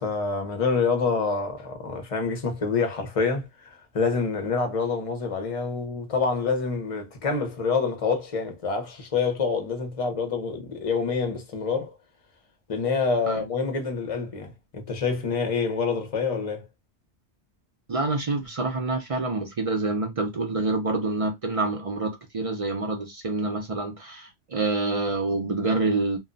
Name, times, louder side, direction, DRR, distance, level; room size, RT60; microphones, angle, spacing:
voice 1, 0.0-3.7 3.9-11.9 12.7-16.7, left 4 dB, 35° left, 0.7 m, -27 dB
voice 2, 17.9-26.2, right 3 dB, 45° right, 0.5 m, -27 dB
2.3 x 2.1 x 3.8 m
omnidirectional pair, 1.2 m